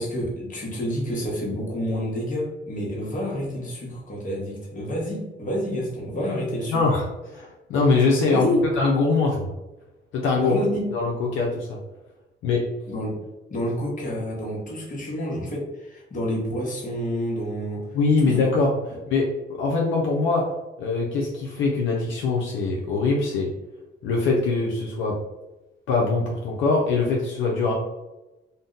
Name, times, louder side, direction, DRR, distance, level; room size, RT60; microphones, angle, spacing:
voice 1, 0.0-6.8 8.3-8.6 10.3-10.9 12.9-13.2 13.5-17.9 18.2-18.3, equal, 40° left, -2 dB, 1.2 m, -28 dB
voice 2, 6.7-7.0 7.3-8.5 8.8-9.5 10.1-10.6 10.9-11.8 12.4-12.6 17.9-19.3 19.6-20.5 20.8-23.5 24.0-25.2 25.9-27.7, left 3 dB, 80° left, -2 dB, 0.6 m, -22 dB
2.6 x 2.1 x 3.8 m, 1.0 s
cardioid pair, 90°, 20 cm